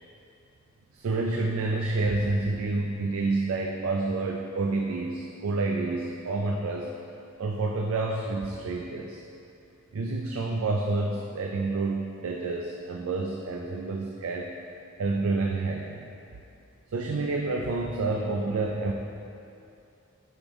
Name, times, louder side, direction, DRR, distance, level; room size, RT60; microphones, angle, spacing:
voice 1, 0.9-6.9 7.4-9.2 9.9-14.5 15.0-16.0 16.9-18.9, right 3 dB, 80° right, 1 dB, 0.4 m, -28 dB
7.0 x 5.3 x 3.0 m, 2.7 s
head